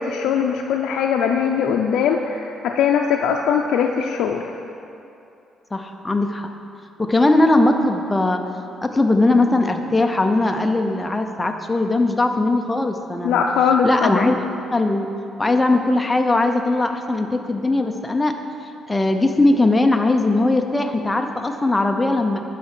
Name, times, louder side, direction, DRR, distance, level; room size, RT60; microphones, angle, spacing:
voice 1, 0.0-4.5 13.2-14.3, left 7 dB, 85° left, 2 dB, 0.4 m, -20 dB
voice 2, 5.7-6.5 7.0-8.4 8.8-13.4 13.8-14.4 14.7-15.1 15.4-18.3 18.9-22.4, left 2 dB, 10° left, 4 dB, 0.5 m, -19 dB
9.2 x 5.7 x 6.0 m, 2.7 s
cardioid pair, 160°, 0 cm